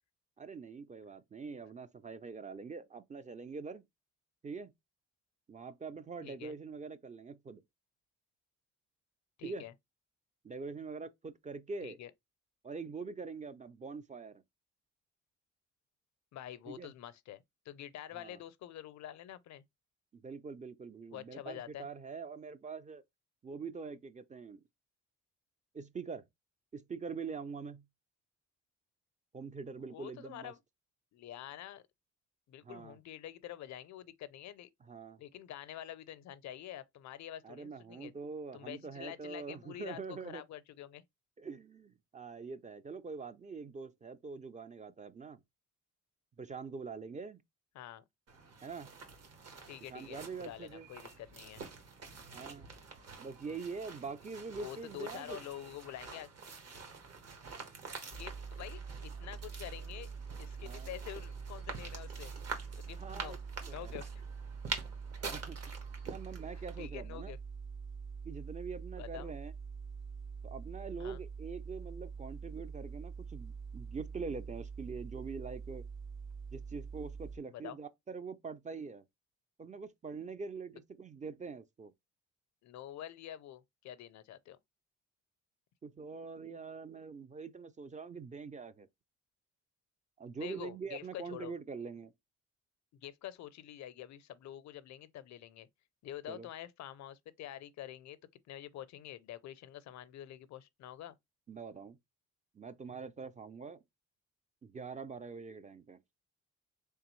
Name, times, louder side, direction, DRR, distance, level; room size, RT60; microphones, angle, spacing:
voice 1, 0.4-3.8 4.4-4.7 5.5-7.6 9.4-9.6 10.4-12.0 12.6-14.4 16.7-16.9 18.1-18.4 20.1-23.0 23.4-24.6 25.7-26.2 26.7-27.8 29.3-30.5 32.6-33.0 34.9-35.2 37.4-40.4 41.4-45.4 46.4-47.4 48.6-48.9 49.9-50.9 52.3-52.7 53.2-55.4 60.6-60.9 63.0-63.9 65.2-65.6 66.0-67.3 68.2-69.5 70.4-75.8 76.5-79.0 79.6-81.9 85.8-88.9 90.2-92.1 96.3-96.5 101.5-102.0 102.5-103.8 104.6-106.0, right 5 dB, 25° right, 0.4 m, -44 dB
voice 2, 6.2-6.6 9.4-9.7 11.8-12.1 16.3-19.6 21.1-21.9 29.9-30.6 31.1-31.8 32.5-34.7 35.2-38.1 38.5-41.0 47.7-48.0 49.7-51.6 53.5-53.6 54.5-56.3 58.1-60.1 60.4-62.3 62.8-63.4 63.7-64.2 66.8-67.4 69.0-69.3 71.0-71.2 77.5-77.8 82.6-84.6 90.4-91.5 93.0-95.7 96.0-98.2 98.5-101.1, left 12 dB, 65° left, 0.5 m, -47 dB
sound 1, 48.3-66.9, right 4 dB, 55° right, 1.4 m, -47 dB
sound 2, 58.1-77.4, right 5 dB, 80° right, 1.5 m, -45 dB
3.6 x 3.4 x 3.0 m
cardioid pair, 90°, 30 cm